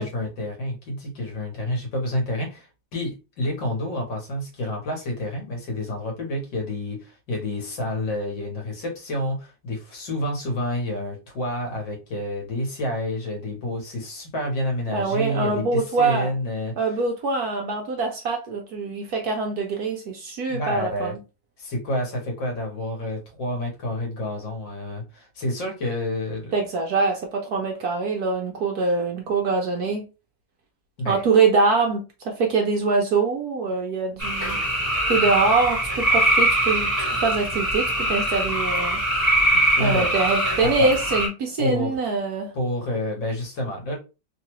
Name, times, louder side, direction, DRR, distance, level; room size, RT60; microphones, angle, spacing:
voice 1, 0.0-16.7 20.5-21.1 21.6-26.5 31.0-31.2 39.5-40.1 40.6-41.0 41.6-41.9 42.5-44.0, left 1 dB, 70° left, 1.9 m, -29 dB
voice 2, 14.9-16.3 16.8-21.2 26.5-30.0 31.1-34.6 35.1-39.0 39.8-42.5, right 4 dB, 65° right, 1.0 m, -24 dB
sound 1, 34.2-41.3, right 1 dB, 10° left, 1.1 m, -22 dB
3.7 x 2.4 x 3.0 m
omnidirectional pair, 2.1 m